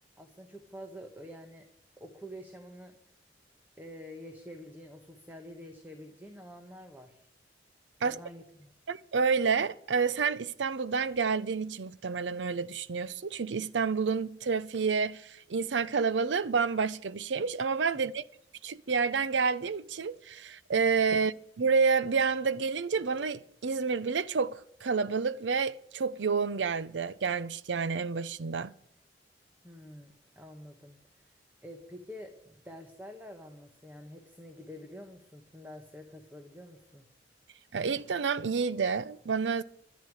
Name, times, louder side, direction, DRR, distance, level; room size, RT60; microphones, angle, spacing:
voice 1, 0.2-1.7 2.0-3.0 3.8-7.3 8.0-8.7 21.1-21.2 29.6-31.0 31.6-37.1, equal, 10° right, 1.2 m, -47 dB
voice 2, 8.9-18.2 18.6-28.7 37.7-39.6, right 5 dB, 85° right, 0.6 m, -29 dB
24.0 x 8.3 x 4.8 m
head